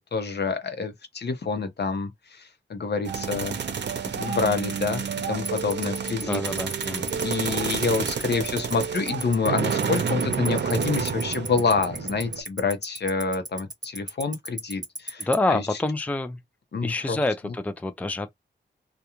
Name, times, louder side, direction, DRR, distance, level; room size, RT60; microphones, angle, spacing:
voice 1, 0.0-3.6 4.2-6.4 7.2-15.6 16.7-17.2 17.4-17.5, left 4 dB, 60° left, 0.8 m, -27 dB
sound 1, 3.1-12.4, right 6 dB, 65° right, 0.7 m, -29 dB
Tick-tock, 5.5-15.3, right 2 dB, 20° right, 0.8 m, -31 dB
voice 2, 6.2-7.1 15.2-16.4 16.8-18.3, left 2 dB, 5° left, 0.4 m, -27 dB
2.4 x 2.2 x 2.9 m
cardioid pair, 60°, 20 cm